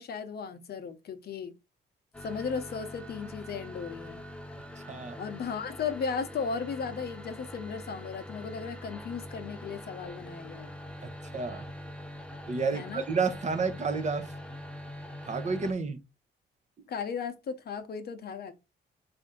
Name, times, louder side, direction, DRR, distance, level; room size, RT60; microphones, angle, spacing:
voice 1, 0.0-1.5 2.2-4.2 5.2-10.7 12.7-13.0 16.9-18.5, left 6 dB, 55° left, 0.7 m, -36 dB
sound 1, 2.1-15.7, equal, 5° left, 0.6 m, -43 dB
voice 2, 11.0-11.6 12.5-14.3 15.3-16.0, right 4 dB, 35° right, 0.7 m, -30 dB
4.3 x 2.5 x 3.6 m
cardioid pair, 90°, 20 cm